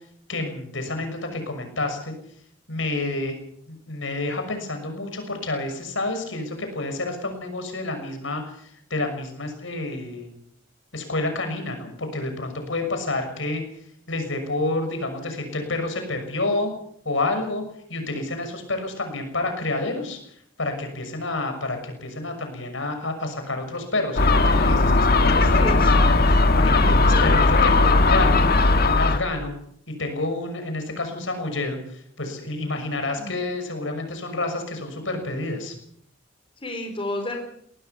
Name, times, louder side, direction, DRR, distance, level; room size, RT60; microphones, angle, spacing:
voice 1, 0.3-2.1 2.7-3.4 3.7-10.3 10.9-13.6 14.1-16.7 17.0-17.6 17.9-20.2 20.6-28.5 28.8-29.5 29.9-35.7, left 2 dB, 80° left, 6 dB, 6.3 m, -29 dB
Gull seagull, 24.2-29.2, left 3 dB, 55° left, 1.5 m, -17 dB
voice 2, 25.4-25.9 27.1-27.3 33.2-33.3 36.6-37.4, left 1 dB, 30° left, 4 dB, 4.5 m, -31 dB
22.0 x 18.0 x 7.0 m, 0.68 s
head